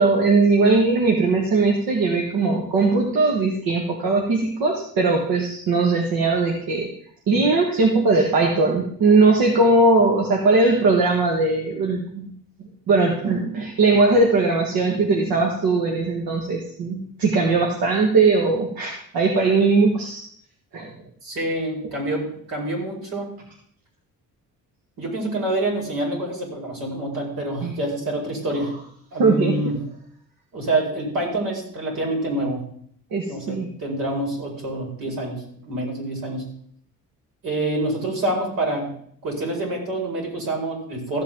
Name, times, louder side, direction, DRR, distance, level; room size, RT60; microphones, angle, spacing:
voice 1, 0.0-6.9 7.3-12.3 12.9-20.2 20.7-21.0 27.6-27.7 29.2-29.6 33.1-33.7, right 3 dB, 90° right, 0 dB, 1.9 m, -19 dB
voice 2, 21.2-23.4 25.0-28.7 29.1-29.8 30.5-32.7 33.3-36.5 37.4-38.9 39.2-41.2, right 1 dB, 70° right, -1 dB, 5.2 m, -27 dB
15.0 x 7.9 x 3.9 m, 0.62 s
cardioid pair, 160°, 35 cm